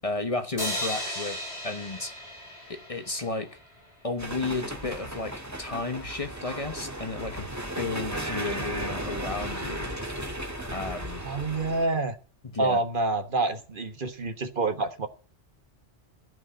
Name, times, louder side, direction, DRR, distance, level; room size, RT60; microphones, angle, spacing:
voice 1, 0.0-2.1 2.7-3.6 4.0-7.5 7.8-9.9 10.7-11.2 12.5-12.8, left 3 dB, 35° left, 1.1 m, -33 dB
sound 1, 0.6-3.9, equal, 80° left, 7.5 m, -35 dB
sound 2, 4.2-11.9, right 1 dB, 15° right, 1.6 m, -35 dB
voice 2, 11.2-12.2 12.6-15.1, right 3 dB, 55° right, 1.4 m, -27 dB
15.0 x 5.4 x 9.8 m
omnidirectional pair, 1.1 m